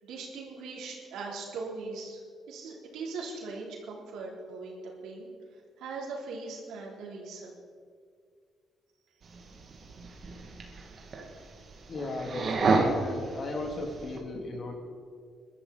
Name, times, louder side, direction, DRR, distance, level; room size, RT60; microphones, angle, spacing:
voice 1, 0.0-2.2 2.5-7.5, right 3 dB, 85° right, -2 dB, 3.4 m, -40 dB
sound 1, 9.2-14.2, right 3 dB, 50° right, 2.2 m, -31 dB
voice 2, 11.9-14.8, left 2 dB, 45° left, 2 dB, 2.7 m, -36 dB
21.0 x 12.5 x 4.1 m, 2.1 s
cardioid pair, 90°, 0 cm